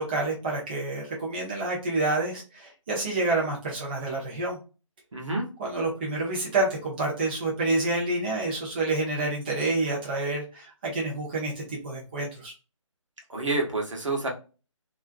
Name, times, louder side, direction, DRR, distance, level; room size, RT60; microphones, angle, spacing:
voice 1, 0.0-4.6 5.6-12.5, right 2 dB, 20° right, -4 dB, 0.5 m, -28 dB
voice 2, 5.1-5.5 13.3-14.3, right 2 dB, 65° right, 0 dB, 1.1 m, -28 dB
2.5 x 2.1 x 2.5 m, 0.33 s
figure-of-eight pair, 155°, 17 cm